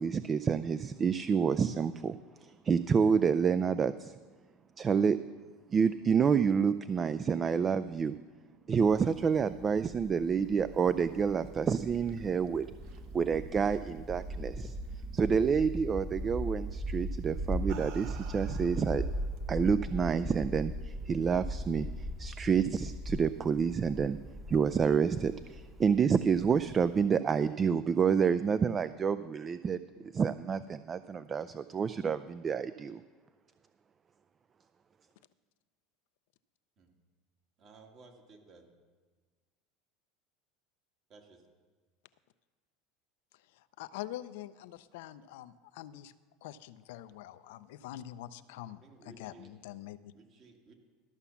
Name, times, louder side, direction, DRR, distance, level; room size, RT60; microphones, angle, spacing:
voice 1, 0.0-4.1 4.8-5.2 5.7-8.2 8.7-12.7 13.1-14.8 15.1-19.1 19.5-24.2 24.5-33.0, right 6 dB, 30° right, 14 dB, 0.3 m, -28 dB
sound 1, 8.8-27.0, right 1 dB, 5° left, 1.1 m, -39 dB
sound 2, 11.6-14.5 14.8-15.3 16.5-16.7 17.4-19.5, right 8 dB, 65° right, 0.9 m, -52 dB
voice 2, 37.6-38.7 41.1-41.4 48.8-49.5 50.1-50.7, right 3 dB, 45° right, 3 dB, 2.0 m, -56 dB
voice 3, 43.8-46.1 46.4-50.1, left 13 dB, 75° left, 14 dB, 0.5 m, -45 dB
13.0 x 5.7 x 7.1 m, 1.4 s
hypercardioid pair, 95°, 0 cm